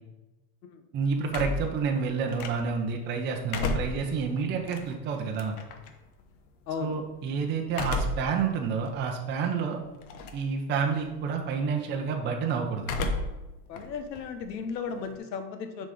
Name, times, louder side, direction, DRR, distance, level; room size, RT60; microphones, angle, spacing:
voice 1, 0.9-5.6 6.8-9.8 10.3-12.9, right 5 dB, 20° right, 2 dB, 0.7 m, -29 dB
sound 1, 1.3-2.9 3.3-5.9 7.7-8.4 8.9-9.0 10.0-10.5 10.8-11.2 12.8-13.5 13.8-15.2, left 2 dB, 60° left, 1.1 m, -33 dB
voice 2, 6.7-7.0 13.7-15.9, left 5 dB, 85° left, 8 dB, 1.2 m, -35 dB
6.6 x 4.2 x 5.0 m, 1.0 s
supercardioid pair, 135°, 49 cm